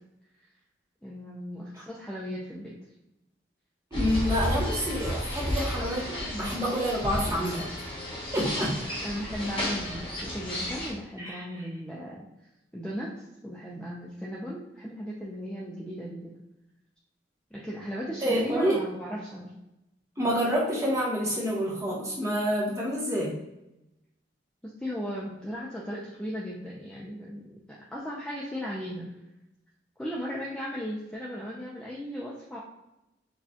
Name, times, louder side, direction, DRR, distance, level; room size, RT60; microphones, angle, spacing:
voice 1, 1.0-2.7 9.0-12.3 12.7-16.4 17.5-19.5 24.6-29.1 30.0-32.6, equal, 5° left, -6 dB, 0.5 m, -36 dB
sound 1, 3.9-10.9, left 1 dB, 30° left, 1.3 m, -32 dB
voice 2, 3.9-7.7 8.3-8.8 11.2-11.4 18.2-18.8 20.2-23.4, equal, 15° right, -4 dB, 1.0 m, -28 dB
6.2 x 2.4 x 2.8 m, 0.91 s
head